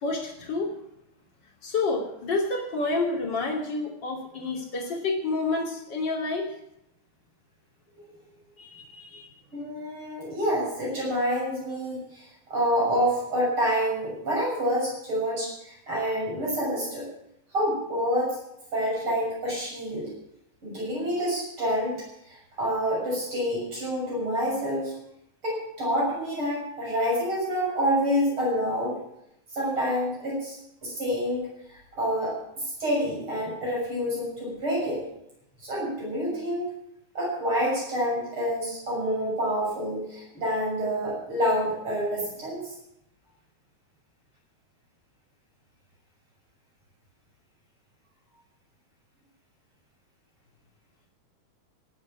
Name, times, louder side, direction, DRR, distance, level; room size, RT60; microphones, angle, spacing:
voice 1, 0.0-0.7 1.6-6.5 8.6-9.3, left 3 dB, 40° left, 1 dB, 3.3 m, -29 dB
voice 2, 9.5-17.1 17.5-18.4 18.7-20.1 20.6-22.0 22.3-24.9 25.4-29.0 29.5-30.6 30.8-35.0 35.6-36.7 37.1-42.6, equal, 45° right, -5 dB, 7.6 m, -28 dB
17.5 x 8.1 x 7.4 m, 0.80 s
omnidirectional pair, 3.4 m